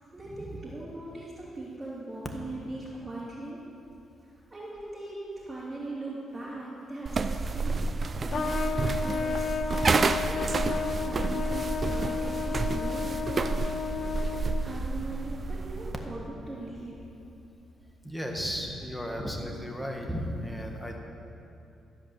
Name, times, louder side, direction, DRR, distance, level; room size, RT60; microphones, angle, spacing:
voice 1, 0.1-3.6 4.2-7.9 8.1-9.5 10.3-13.7 14.6-17.0, right 2 dB, 25° right, -10 dB, 3.0 m, -40 dB
sound 1, 7.1-16.0, right 4 dB, 40° right, 0.5 m, -30 dB
Trumpet, 8.3-14.8, left 6 dB, 50° left, 0.5 m, -32 dB
voice 2, 18.0-21.0, equal, ahead, 1 dB, 1.7 m, -34 dB
14.0 x 5.2 x 7.1 m, 2.8 s
cardioid pair, 75°, 0 cm